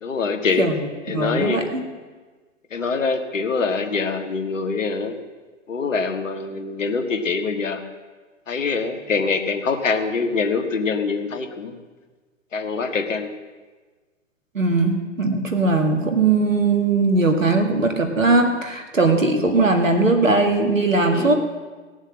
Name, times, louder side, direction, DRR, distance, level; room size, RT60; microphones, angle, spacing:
voice 1, 0.0-0.7 1.1-1.6 2.7-5.2 5.7-7.8 8.5-11.8 12.5-13.3 21.1-21.3, left 4 dB, 75° left, 7 dB, 1.6 m, -24 dB
voice 2, 1.1-1.8 14.5-21.3, right 3 dB, 90° right, 5 dB, 2.0 m, -19 dB
18.0 x 7.2 x 7.5 m, 1.4 s
figure-of-eight pair, 110°, 38 cm